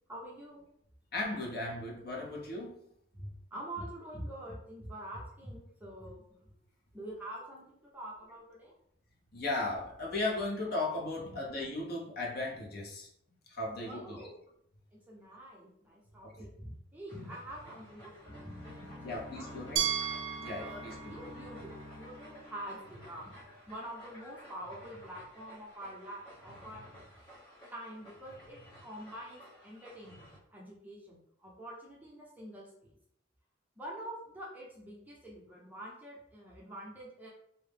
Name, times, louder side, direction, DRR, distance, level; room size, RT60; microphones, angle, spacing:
voice 1, 0.1-0.7 3.1-6.5 6.9-8.7 11.2-11.3 13.9-14.4 14.9-19.6 20.6-23.3 23.7-26.9 27.7-32.9 33.8-37.3, right 1 dB, 10° right, -5 dB, 0.6 m, -46 dB
voice 2, 1.1-2.9 9.3-13.1 13.5-14.3 16.2-16.3 19.0-19.9 20.4-21.0, left 2 dB, 50° left, -2 dB, 0.7 m, -36 dB
sound 1, 17.1-30.4, equal, 25° left, 1.0 m, -54 dB
sound 2, 18.2-23.2, left 1 dB, 75° left, 1.0 m, -49 dB
Glass, 19.8-22.7, right 9 dB, 75° right, 0.4 m, -37 dB
2.6 x 2.0 x 3.3 m, 0.70 s
head